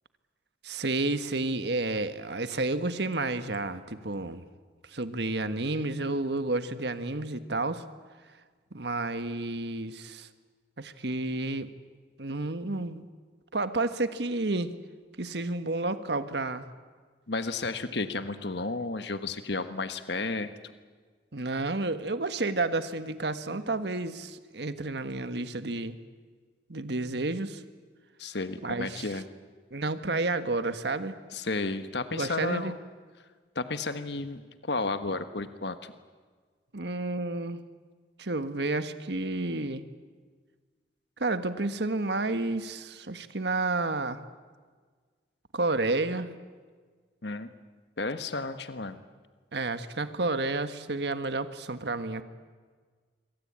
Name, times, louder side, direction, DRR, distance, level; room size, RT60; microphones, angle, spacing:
voice 1, 0.6-4.4 4.8-7.8 8.7-10.3 10.8-11.7 12.2-13.0 13.5-14.7 15.2-16.6 21.3-26.0 26.7-27.6 28.6-29.2 29.7-31.2 32.1-32.7 36.7-37.6 38.2-39.8 41.2-44.2 45.5-46.3 49.5-52.2, right 2 dB, 70° right, 10 dB, 1.5 m, -30 dB
voice 2, 17.3-20.7 28.2-29.2 31.3-32.7 33.5-35.9 47.2-47.5 48.0-49.0, left 3 dB, 70° left, 10 dB, 1.4 m, -32 dB
27.0 x 24.0 x 8.8 m, 1.5 s
head